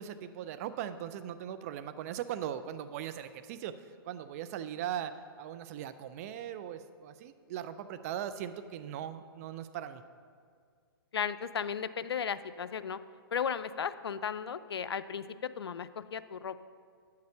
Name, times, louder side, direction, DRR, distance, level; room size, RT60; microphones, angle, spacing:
voice 1, 0.0-10.0, right 10 dB, 40° right, 11 dB, 0.5 m, -39 dB
voice 2, 11.1-13.0 13.3-16.6, left 7 dB, 85° left, 13 dB, 0.5 m, -35 dB
9.4 x 6.6 x 6.8 m, 2.1 s
hypercardioid pair, 140°, 13 cm